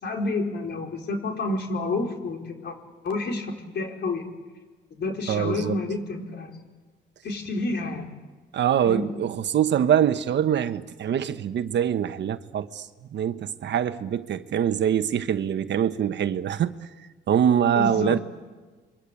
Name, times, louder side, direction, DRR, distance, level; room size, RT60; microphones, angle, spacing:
voice 1, 0.0-2.7 3.0-4.2 5.0-6.5 7.2-8.1 8.8-9.1 17.7-18.2, left 3 dB, 60° left, 4.8 m, -29 dB
voice 2, 5.3-5.7 8.5-12.8 13.1-16.8 17.3-18.2, right 9 dB, 65° right, 1.2 m, -24 dB
28.0 x 23.5 x 8.4 m
cardioid pair, 90°, 20 cm